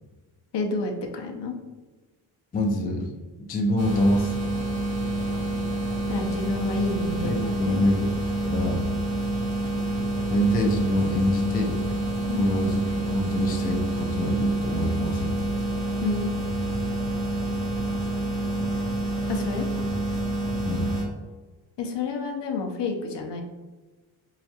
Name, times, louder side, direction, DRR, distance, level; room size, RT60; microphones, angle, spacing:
voice 1, 0.5-1.5 6.1-7.8 12.3-12.5 16.0-16.3 19.3-19.7 21.8-23.4, left 4 dB, 60° left, 3 dB, 0.6 m, -30 dB
voice 2, 2.5-3.1 3.4-4.4 7.2-8.9 10.3-11.8 12.4-15.4 18.6-18.8 20.6-20.9, left 1 dB, 20° left, 1 dB, 0.4 m, -25 dB
sound 1, 3.8-21.0, right 1 dB, 80° right, 1.0 m, -28 dB
4.8 x 2.2 x 2.7 m, 1.3 s
wide cardioid pair, 120°, 49 cm